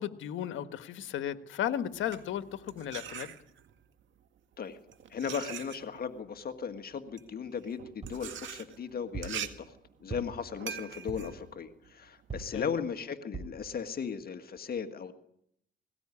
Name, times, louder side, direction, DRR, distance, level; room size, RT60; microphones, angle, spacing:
voice 1, 0.0-3.3 12.5-12.7, left 10 dB, 80° left, 10 dB, 1.5 m, -35 dB
sound 1, 1.8-3.8 4.6-12.5, right 9 dB, 70° right, 1.9 m, -44 dB
voice 2, 5.1-9.7 10.0-15.1, left 6 dB, 50° left, 8 dB, 1.8 m, -37 dB
sound 2, 8.0-8.3 9.1-9.4 10.1-10.5 11.1-11.4 12.3-12.6 13.3-13.6 14.2-14.3 14.6-14.7, right 5 dB, 30° right, 4.7 m, -41 dB
19.5 x 18.5 x 9.9 m, 0.75 s
cardioid pair, 90°, 20 cm